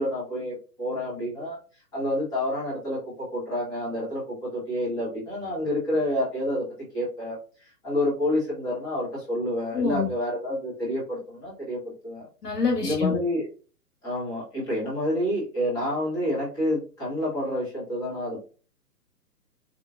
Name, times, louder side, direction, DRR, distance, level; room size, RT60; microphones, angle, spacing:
voice 1, 0.0-1.6 1.9-6.6 6.9-12.3 12.8-13.5 14.0-18.4, left 1 dB, 10° left, -7 dB, 1.0 m, -28 dB
voice 2, 9.7-10.1 12.4-13.2, left 5 dB, 70° left, 2 dB, 1.6 m, -25 dB
4.5 x 2.4 x 2.4 m, 0.37 s
figure-of-eight pair, 125°, 48 cm